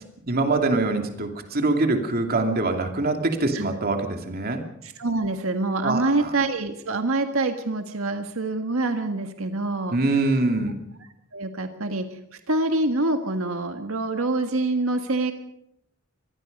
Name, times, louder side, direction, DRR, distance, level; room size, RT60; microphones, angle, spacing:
voice 1, 0.3-4.6 5.8-6.3 9.9-10.8, right 2 dB, 50° right, 4 dB, 2.7 m, -24 dB
voice 2, 4.8-10.0 11.3-12.2 12.5-15.3, right 2 dB, 90° right, 6 dB, 1.7 m, -25 dB
25.5 x 19.5 x 5.4 m, 0.79 s
head